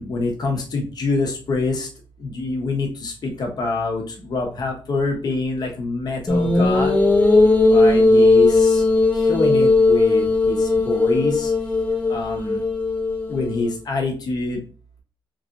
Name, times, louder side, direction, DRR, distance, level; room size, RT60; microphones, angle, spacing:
voice 1, 0.0-1.9 2.2-6.9 7.7-8.8 9.1-11.5 12.1-12.6 13.3-14.6, left 3 dB, 50° left, 1 dB, 0.9 m, -25 dB
sound 1, 6.3-13.7, left 2 dB, 20° left, 0.5 m, -17 dB
3.1 x 2.5 x 2.8 m, 0.38 s
wide cardioid pair, 155°, 9 cm